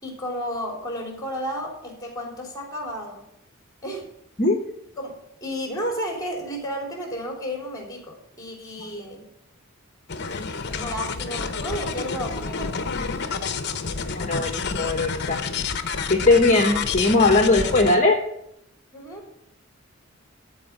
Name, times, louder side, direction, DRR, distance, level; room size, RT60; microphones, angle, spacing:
voice 1, 0.0-3.2 3.8-4.1 5.0-9.3 10.2-12.9 18.9-19.3, equal, 15° left, 1 dB, 3.4 m, -32 dB
sound 1, 10.1-18.0, left 5 dB, 50° left, 0.9 m, -29 dB
voice 2, 14.2-15.4 16.1-18.2, left 2 dB, 35° left, 2 dB, 1.2 m, -19 dB
13.5 x 4.9 x 8.5 m, 0.78 s
head